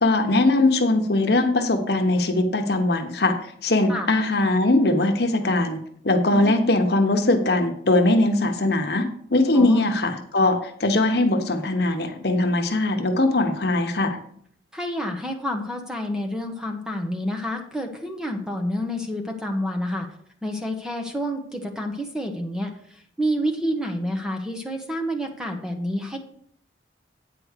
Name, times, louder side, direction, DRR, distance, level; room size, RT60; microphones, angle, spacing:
voice 1, 0.0-3.3 3.6-5.8 6.0-9.1 9.3-14.2, left 2 dB, 60° left, 5 dB, 1.1 m, -21 dB
voice 2, 14.7-20.1 20.4-26.2, equal, 5° right, 3 dB, 1.0 m, -29 dB
9.0 x 4.8 x 6.6 m, 0.64 s
head